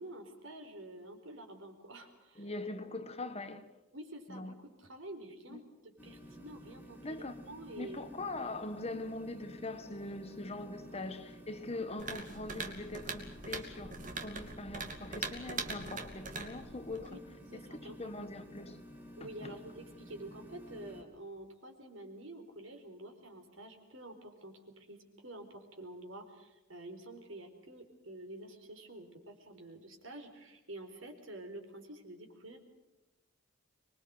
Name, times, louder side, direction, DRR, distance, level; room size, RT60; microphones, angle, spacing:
voice 1, 0.0-2.5 3.2-3.3 3.9-8.0 17.0-17.2 17.5-18.0 19.2-32.6, right 1 dB, 65° right, 5 dB, 4.6 m, -49 dB
voice 2, 2.3-3.7 4.3-4.5 5.5-5.6 7.0-7.4 7.8-17.2 17.7-18.8 19.2-19.6, left 2 dB, 30° left, 9 dB, 1.4 m, -42 dB
sound 1, 6.0-21.0, equal, 10° right, 3.6 m, -52 dB
sound 2, 12.0-17.2, right 4 dB, 40° right, 2.6 m, -42 dB
25.5 x 22.5 x 8.0 m, 0.99 s
head